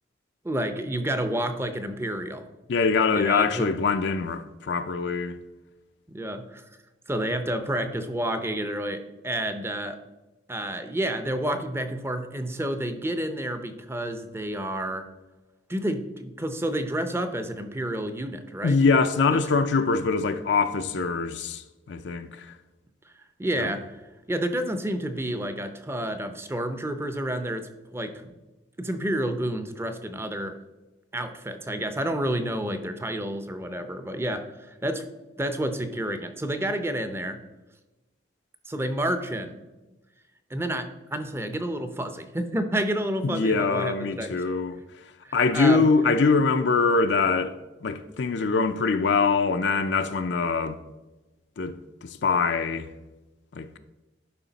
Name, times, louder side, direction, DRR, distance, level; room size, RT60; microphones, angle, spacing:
voice 1, 0.4-2.5 3.1-3.7 6.1-6.6 7.1-10.0 10.5-15.1 15.7-18.8 19.3-19.4 23.4-23.9 24.3-28.3 28.8-30.6 31.1-35.1 35.4-37.4 38.7-39.6 40.5-44.4 45.2-45.9, right 1 dB, 15° right, 0.6 m, -30 dB
voice 2, 2.7-5.3 18.6-22.5 23.6-23.7 43.2-44.8 45.3-47.5 47.8-50.8 51.6-52.9 53.5-53.7, left 4 dB, 65° left, 0.5 m, -23 dB
11.5 x 5.1 x 4.0 m
head